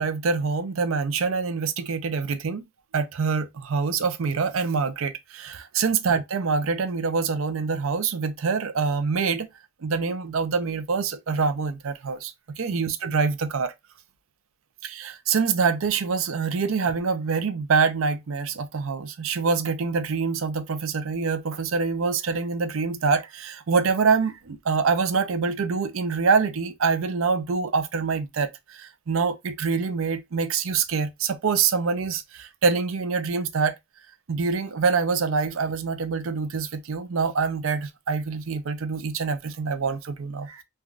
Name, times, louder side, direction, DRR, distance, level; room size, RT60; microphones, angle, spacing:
voice 1, 0.0-2.6 2.9-9.5 9.8-13.7 14.8-33.7 34.3-40.6, right 5 dB, 85° right, 0.5 m, -25 dB
3.3 x 2.3 x 2.4 m
head